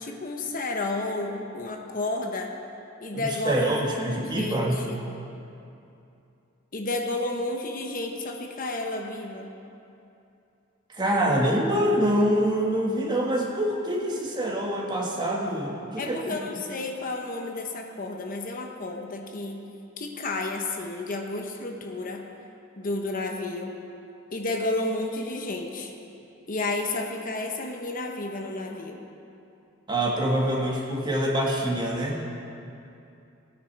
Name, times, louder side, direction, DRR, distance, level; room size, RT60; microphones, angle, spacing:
voice 1, 0.0-2.5 3.0-3.9 4.2-5.0 6.7-9.5 16.0-19.6 20.0-22.3 22.8-23.8 24.3-25.9 26.5-29.0, left 2 dB, 40° left, 2 dB, 1.0 m, -31 dB
voice 2, 3.1-4.8 10.9-16.6 29.9-32.2, right 1 dB, 20° right, -1 dB, 1.6 m, -25 dB
18.5 x 9.4 x 4.7 m, 2.7 s
head